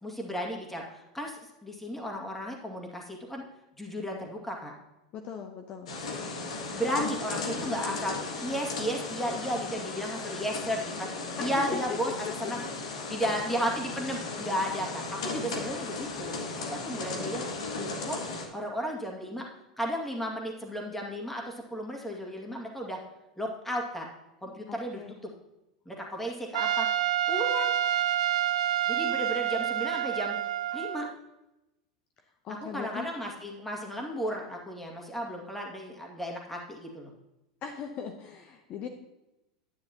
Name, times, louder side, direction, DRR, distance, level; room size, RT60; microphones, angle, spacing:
voice 1, 0.0-3.4 3.8-4.7 6.7-12.1 12.5-12.6 13.1-16.4 16.7-17.4 17.8-18.2 18.5-19.5 19.8-23.0 23.4-24.1 24.4-25.0 25.9-26.9 27.3-27.7 28.9-30.4 30.7-31.1 32.6-37.1, equal, 5° left, 0 dB, 2.1 m, -34 dB
voice 2, 5.1-5.9 7.0-7.1 11.4-11.8 24.7-25.2 32.4-33.1 37.6-38.9, left 7 dB, 40° left, 4 dB, 0.9 m, -39 dB
sound 1, 5.9-18.4, left 3 dB, 70° left, 1.6 m, -36 dB
Trumpet, 26.5-31.1, right 11 dB, 70° right, 0.4 m, -28 dB
10.0 x 9.6 x 3.0 m, 0.95 s
hypercardioid pair, 90°, 3 cm